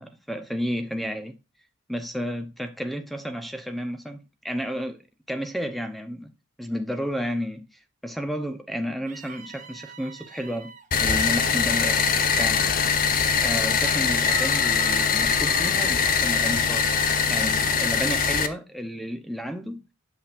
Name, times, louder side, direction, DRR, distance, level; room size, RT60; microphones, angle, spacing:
voice 1, 0.0-1.4 1.9-5.0 5.3-6.3 6.6-10.7 11.0-12.1 12.4-12.7 13.3-19.8, equal, ahead, 0.7 m, -32 dB
sound 1, 9.1-10.9 13.8-15.8, right 4 dB, 40° right, 0.9 m, -42 dB
sound 2, 10.9-18.5, left 6 dB, 45° left, 0.6 m, -22 dB
8.4 x 5.9 x 2.4 m
head